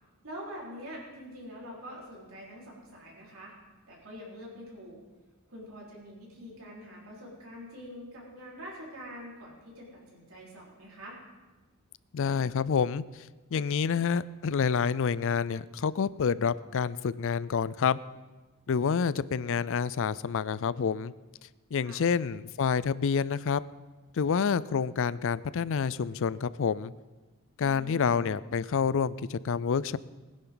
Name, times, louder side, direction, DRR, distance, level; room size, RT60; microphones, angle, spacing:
voice 1, 0.2-3.5 3.9-5.0 5.5-11.2 21.8-22.0 27.6-28.3, equal, 65° right, -4 dB, 4.4 m, -45 dB
voice 2, 12.1-18.0 18.7-21.1 21.7-23.6 24.1-26.9 27.6-30.0, left 6 dB, 60° left, 18 dB, 0.4 m, -28 dB
21.0 x 10.5 x 3.9 m, 1.2 s
head